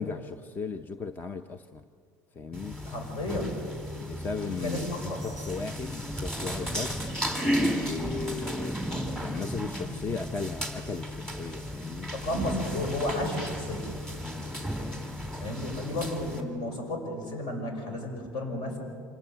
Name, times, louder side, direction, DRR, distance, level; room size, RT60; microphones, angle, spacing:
voice 1, 0.0-1.8 2.3-2.8 3.9-7.1 7.8-8.8 9.2-12.1 14.2-14.7, left 4 dB, 20° left, 10 dB, 0.7 m, -37 dB
sound 1, 2.5-16.4, equal, 5° left, 3.1 m, -34 dB
voice 2, 2.8-3.6 4.5-5.2 12.1-13.9 15.4-18.8, left 1 dB, 55° left, 3 dB, 6.4 m, -33 dB
26.5 x 18.5 x 8.0 m, 2.2 s
cardioid pair, 135°, 9 cm